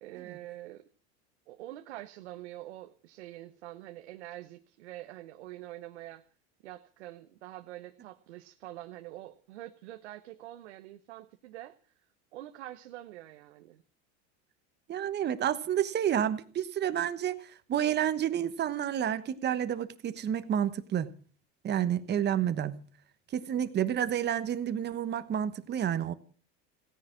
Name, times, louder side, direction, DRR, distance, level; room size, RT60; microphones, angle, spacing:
voice 1, 0.0-0.9 1.5-6.2 6.6-11.7 12.3-13.8, right 15 dB, 90° right, 1.0 m, -45 dB
voice 2, 14.9-21.1 21.6-22.8 23.3-26.1, right 10 dB, 30° right, 1.2 m, -30 dB
16.5 x 10.0 x 7.5 m
supercardioid pair, 115°, 33 cm